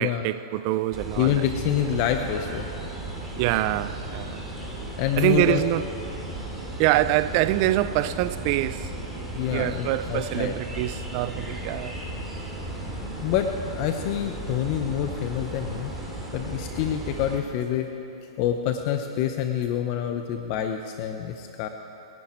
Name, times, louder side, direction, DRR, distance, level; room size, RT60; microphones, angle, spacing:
voice 1, 0.0-1.4 3.4-4.4 5.2-5.8 6.8-8.9 9.5-12.0, right 16 dB, 45° right, 0.4 m, -25 dB
sound 1, 0.9-17.4, right 1 dB, 5° right, 3.3 m, -35 dB
voice 2, 1.2-2.7 5.0-5.6 9.3-10.6 13.2-13.5 13.7-15.9 16.3-17.9 18.4-21.7, left 10 dB, 45° left, 0.9 m, -27 dB
27.0 x 11.0 x 4.5 m
hypercardioid pair, 130°, 3 cm